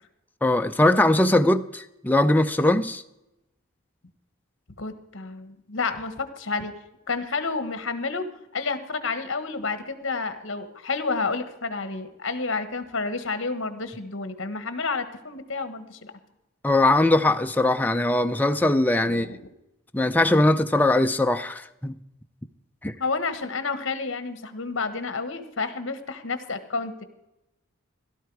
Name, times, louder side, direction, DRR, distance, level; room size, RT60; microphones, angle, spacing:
voice 1, 0.4-3.0 16.6-19.3 19.9-21.9 22.8-22.9, left 1 dB, 10° left, 0.4 m, -21 dB
voice 2, 4.8-6.7 7.1-8.2 8.5-16.1 19.1-19.4 23.0-27.0, left 4 dB, 60° left, 1.3 m, -30 dB
16.5 x 12.5 x 4.7 m
head